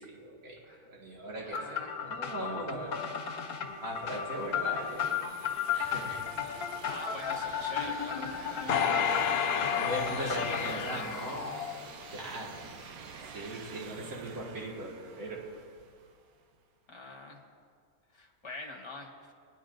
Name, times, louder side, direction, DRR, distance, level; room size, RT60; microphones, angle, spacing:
voice 1, 0.0-3.1 3.8-5.1 5.7-6.2 9.8-11.6 12.1-12.6 13.3-15.5, right 1 dB, 65° right, -4 dB, 2.4 m, -39 dB
voice 2, 1.4-2.0 6.8-9.5 10.1-11.1 16.9-17.4 18.1-19.3, left 2 dB, 20° left, 0 dB, 1.3 m, -44 dB
sound 1, 1.5-10.8, left 7 dB, 75° left, 1.7 m, -35 dB
sound 2, 2.8-16.5, right 6 dB, 90° right, 1.3 m, -49 dB
sound 3, 8.7-12.1 12.6-12.7, left 7 dB, 60° left, 0.7 m, -31 dB
21.0 x 10.5 x 2.6 m, 2.1 s
omnidirectional pair, 1.5 m